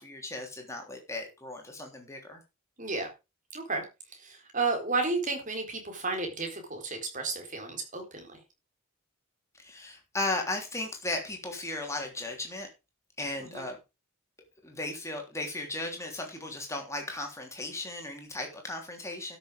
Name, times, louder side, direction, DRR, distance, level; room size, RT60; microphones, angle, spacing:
voice 1, 0.0-2.4 9.5-12.7 13.2-13.8 14.6-19.4, left 2 dB, 15° left, 3 dB, 3.2 m, -36 dB
voice 2, 2.8-3.1 3.5-3.8 4.1-8.3 13.5-13.6, right 3 dB, 35° right, 4 dB, 4.1 m, -32 dB
12.5 x 7.0 x 5.1 m, 0.27 s
head